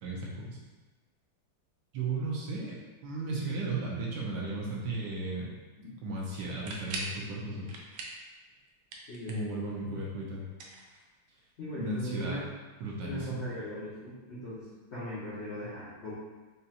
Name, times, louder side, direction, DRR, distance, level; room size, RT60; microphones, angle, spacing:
voice 1, 0.0-0.6 1.9-2.8 3.0-5.5 6.0-7.7 9.3-10.5 11.8-12.4 12.8-13.5, right 3 dB, 70° right, -4 dB, 1.2 m, -35 dB
sound 1, 6.4-7.2 7.7-8.3 8.6-9.6 10.5-11.4, right 2 dB, 85° right, 0.8 m, -41 dB
voice 2, 9.1-9.5 9.9-10.0 11.6-12.4 13.0-16.1, equal, 65° left, -9 dB, 0.6 m, -39 dB
5.2 x 2.3 x 2.8 m, 1.2 s
omnidirectional pair, 2.2 m